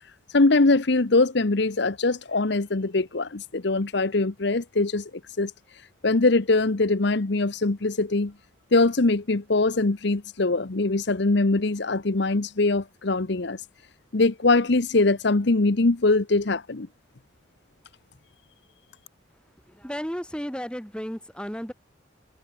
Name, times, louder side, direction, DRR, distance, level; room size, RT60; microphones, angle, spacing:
voice 1, 0.3-5.1 5.4-5.5 6.0-8.3 8.7-13.6 14.1-16.9, left 3 dB, 60° left, 0.9 m, -22 dB
voice 2, 19.7-21.7, equal, 5° left, 2.5 m, -33 dB
head